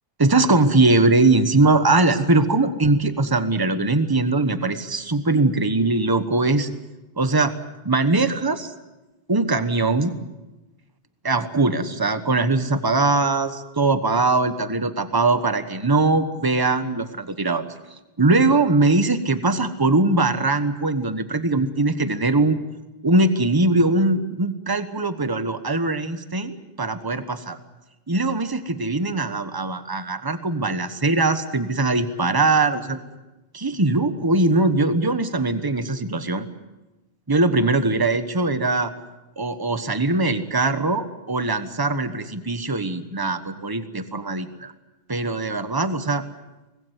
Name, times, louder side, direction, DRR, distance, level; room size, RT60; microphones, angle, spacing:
voice 1, 0.2-6.7 7.2-7.5 7.8-8.7 9.3-10.1 11.2-17.7 18.2-22.6 23.0-27.6 28.1-33.0 33.5-36.4 37.3-38.9 39.4-44.7 45.1-46.2, right 2 dB, 20° right, 10 dB, 1.3 m, -21 dB
24.5 x 20.5 x 8.2 m, 1.0 s
omnidirectional pair, 1.0 m